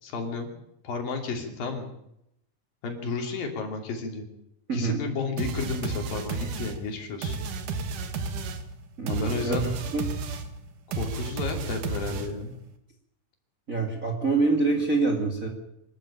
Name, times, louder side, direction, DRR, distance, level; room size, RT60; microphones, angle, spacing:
voice 1, 0.0-0.5 0.8-1.9 2.8-4.3 4.7-7.4 9.1-9.6 10.9-12.5, left 4 dB, 65° left, 3 dB, 4.6 m, -32 dB
voice 2, 4.7-5.0 9.0-10.0 13.7-15.5, right 3 dB, 25° right, 3 dB, 2.3 m, -26 dB
sound 1, 5.4-12.6, right 4 dB, 60° right, 2.9 m, -33 dB
25.0 x 13.5 x 8.8 m, 0.82 s
omnidirectional pair, 4.4 m